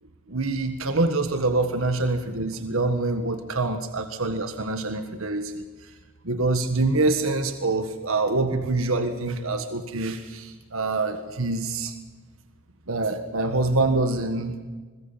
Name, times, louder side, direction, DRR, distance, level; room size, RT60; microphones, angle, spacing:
voice 1, 0.3-5.6 6.2-11.9 12.9-14.6, right 2 dB, 65° right, 7 dB, 1.6 m, -25 dB
21.5 x 21.5 x 5.8 m, 1.4 s
head